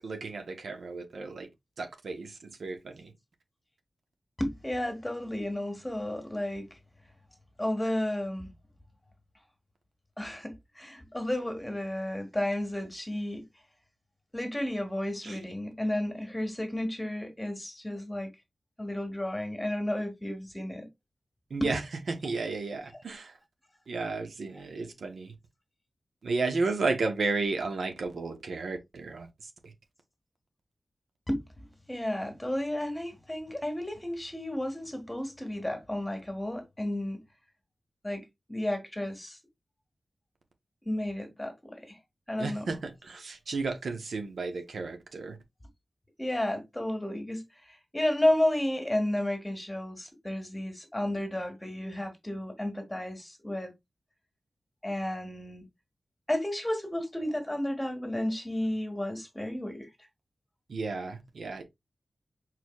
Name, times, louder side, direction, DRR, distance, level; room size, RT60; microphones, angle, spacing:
voice 1, 0.0-1.5 1.8-3.0 15.2-15.3 21.5-21.8 22.1-23.3 23.9-25.3 26.2-29.3 42.4-45.4 60.7-61.6, right 3 dB, 80° right, 0.9 m, -33 dB
voice 2, 4.4-6.8 7.6-8.5 10.2-13.5 14.3-18.3 18.8-20.9 21.6-21.8 22.2-22.3 22.9-23.0 31.3-37.2 38.0-39.4 40.8-42.0 42.3-42.8 46.2-53.7 54.8-55.6 56.3-59.9, left 1 dB, 15° left, 1.5 m, -32 dB
4.6 x 3.9 x 2.3 m
wide cardioid pair, 75°, 0 cm